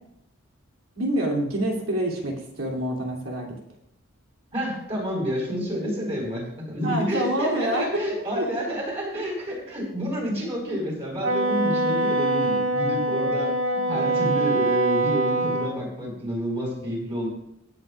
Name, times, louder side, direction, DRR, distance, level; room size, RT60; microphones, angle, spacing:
voice 1, 0.9-3.5 6.8-7.9 8.4-8.5, right 1 dB, 85° right, -1 dB, 3.0 m, -26 dB
voice 2, 4.5-17.3, equal, 30° right, -3 dB, 4.9 m, -29 dB
Wind instrument woodwind instrument, 11.2-15.7, right 2 dB, 70° right, 1.2 m, -24 dB
23.0 x 7.9 x 2.5 m, 0.76 s
head